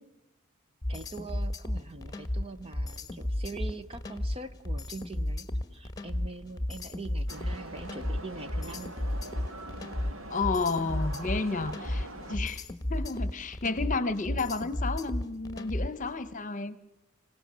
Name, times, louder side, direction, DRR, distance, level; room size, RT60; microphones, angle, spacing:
sound 1, 0.8-16.1, left 1 dB, 15° left, 1.4 m, -33 dB
voice 1, 0.9-8.9, right 3 dB, 25° right, 10 dB, 0.8 m, -43 dB
sound 2, 7.3-12.4, right 2 dB, 70° right, 2.1 m, -43 dB
voice 2, 10.3-12.6 12.9-16.8, left 3 dB, 35° left, 14 dB, 1.1 m, -31 dB
26.5 x 18.0 x 7.6 m, 0.86 s
head